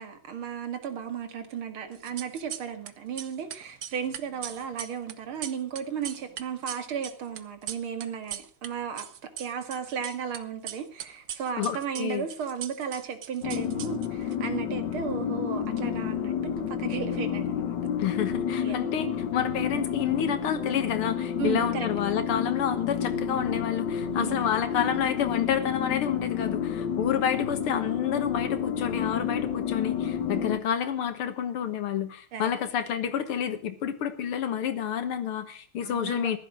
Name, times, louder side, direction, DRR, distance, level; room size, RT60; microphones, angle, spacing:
voice 1, 0.0-9.1 9.4-17.8 18.6-19.1 21.4-21.9 24.1-24.5 30.3-30.6 32.3-32.5 35.8-36.3, right 7 dB, 75° right, 2.8 m, -35 dB
sound 1, 2.0-2.9 3.2-8.7 9.0-10.4 10.7-14.4, right 9 dB, 55° right, 1.2 m, -39 dB
voice 2, 11.6-12.3 18.0-36.4, left 8 dB, 80° left, 2.2 m, -29 dB
sound 2, 13.4-30.6, left 8 dB, 60° left, 1.6 m, -30 dB
15.0 x 11.5 x 6.3 m
omnidirectional pair, 2.3 m